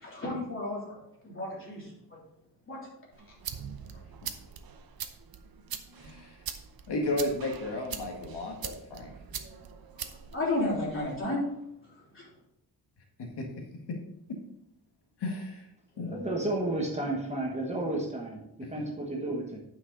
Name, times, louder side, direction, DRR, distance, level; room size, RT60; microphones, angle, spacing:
voice 1, 0.0-1.0 1.2-2.2 2.7-2.8 9.9-10.0 10.3-11.4 11.9-12.3, left 2 dB, 30° left, -5 dB, 3.3 m, -33 dB
sound 1, 3.1-11.2, right 8 dB, 60° right, 0.8 m, -42 dB
voice 2, 6.0-6.4 6.9-9.1 13.4-13.5 13.9-14.0 15.2-15.7 16.0-16.2, left 2 dB, 75° left, 1 dB, 1.9 m, -33 dB
voice 3, 16.0-19.6, right 2 dB, 15° right, -1 dB, 1.4 m, -32 dB
9.4 x 5.8 x 4.0 m, 0.77 s
wide cardioid pair, 170°, 41 cm